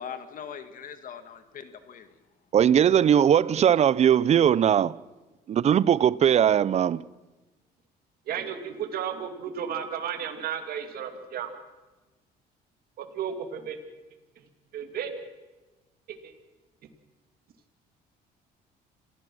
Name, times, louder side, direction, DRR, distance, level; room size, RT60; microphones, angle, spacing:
voice 1, 0.0-2.1, left 7 dB, 55° left, 1.8 m, -41 dB
voice 2, 2.5-5.0 5.5-7.0, right 9 dB, 40° right, 0.6 m, -20 dB
voice 3, 8.3-11.5 13.0-13.8 14.7-15.3 16.1-16.3, right 8 dB, 65° right, 2.5 m, -33 dB
27.0 x 15.5 x 6.2 m
cardioid pair, 110°, 17 cm